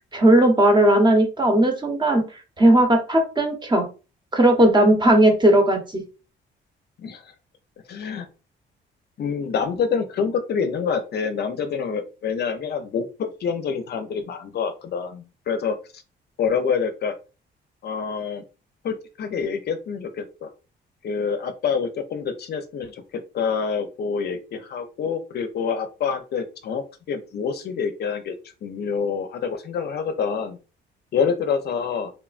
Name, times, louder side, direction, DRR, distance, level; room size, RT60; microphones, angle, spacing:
voice 1, 0.1-2.2 2.6-3.9 4.3-6.0, right 1 dB, 20° right, 4 dB, 0.8 m, -17 dB
voice 2, 7.0-7.3 7.9-8.3 9.2-15.8 16.4-17.1 17.8-18.4 18.8-20.5 21.0-23.0 23.3-30.6 31.1-32.1, left 6 dB, 55° left, 8 dB, 0.5 m, -27 dB
3.1 x 2.1 x 2.4 m, 0.33 s
cardioid pair, 90°, 20 cm